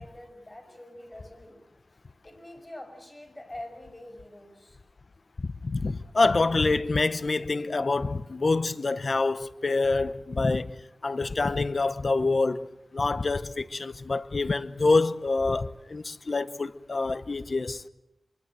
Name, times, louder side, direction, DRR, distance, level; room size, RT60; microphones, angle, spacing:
voice 1, 0.0-1.6 2.2-4.8, left 1 dB, 30° left, 6.3 m, -45 dB
voice 2, 5.4-17.8, left 3 dB, 60° left, 0.9 m, -26 dB
24.5 x 23.0 x 7.9 m
cardioid pair, 50°, 0 cm